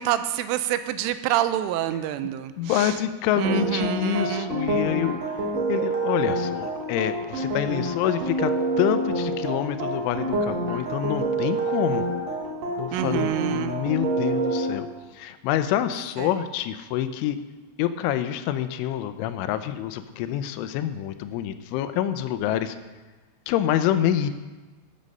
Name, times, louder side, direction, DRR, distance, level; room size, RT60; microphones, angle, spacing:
voice 1, 0.0-3.0 3.3-4.6 12.9-13.8 16.2-16.4, right 12 dB, 90° right, 11 dB, 3.2 m, -27 dB
voice 2, 2.6-5.3 5.7-8.5 8.8-12.1 12.8-14.9 15.2-17.4 17.8-22.8 23.5-24.3, left 11 dB, 85° left, 11 dB, 3.1 m, -27 dB
sound 1, 3.4-14.7, right 2 dB, 60° right, 1.7 m, -27 dB
13.0 x 8.8 x 5.3 m, 1.2 s
omnidirectional pair, 5.5 m